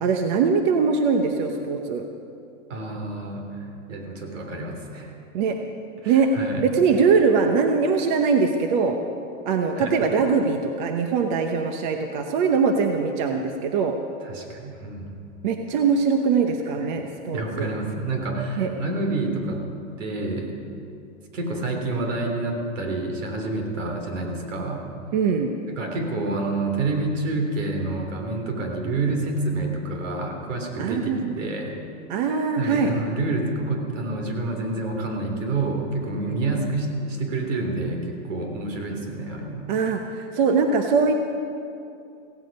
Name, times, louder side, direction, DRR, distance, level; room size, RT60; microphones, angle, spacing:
voice 1, 0.0-2.0 5.3-5.6 6.1-6.3 6.6-8.9 9.5-13.9 15.4-17.7 18.6-18.7 25.1-25.5 30.8-31.3 32.1-32.9 36.3-36.6 39.7-41.1, right 5 dB, 40° right, 5 dB, 0.9 m, -22 dB
voice 2, 2.7-3.6 3.9-5.1 6.0-6.7 9.8-10.0 14.2-15.2 16.8-16.9 17.3-19.6 20.0-20.5 21.3-24.8 25.7-31.8 32.6-39.7, right 2 dB, 80° right, 3 dB, 3.5 m, -28 dB
16.5 x 16.0 x 5.4 m, 2.6 s
supercardioid pair, 165°, 37 cm